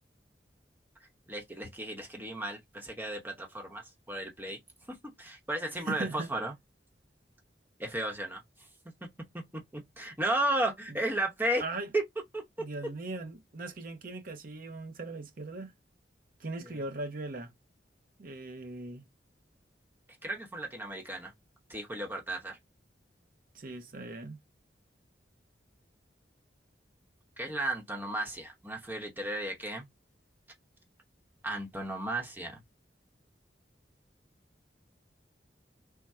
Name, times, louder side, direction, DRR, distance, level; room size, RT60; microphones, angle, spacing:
voice 1, 1.3-4.6 4.9-6.5 7.8-8.4 9.3-9.4 9.7-11.6 11.9-12.0 12.3-12.7 16.6-16.7 20.2-21.3 21.7-22.6 27.4-29.9 31.4-32.6, right 1 dB, 10° right, 0.9 m, -34 dB
voice 2, 5.7-6.3 11.6-11.9 12.6-15.7 16.4-17.5 18.2-19.0 23.5-24.4, right 2 dB, 55° right, 0.7 m, -39 dB
3.5 x 2.1 x 4.2 m
head